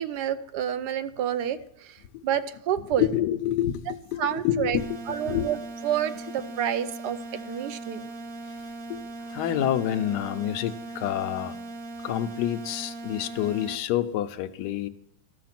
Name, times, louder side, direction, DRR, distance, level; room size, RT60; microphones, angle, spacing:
voice 1, 0.0-3.1 4.2-4.8 5.1-8.1, right 10 dB, 85° right, 1.2 m, -29 dB
voice 2, 3.0-4.9 5.2-5.5 6.4-6.5 8.4-9.0 9.3-11.6 12.0-14.9, left 11 dB, 85° left, 1.3 m, -28 dB
sound 1, 4.8-13.8, right 2 dB, 45° right, 1.0 m, -39 dB
13.0 x 6.4 x 5.9 m
omnidirectional pair, 1.8 m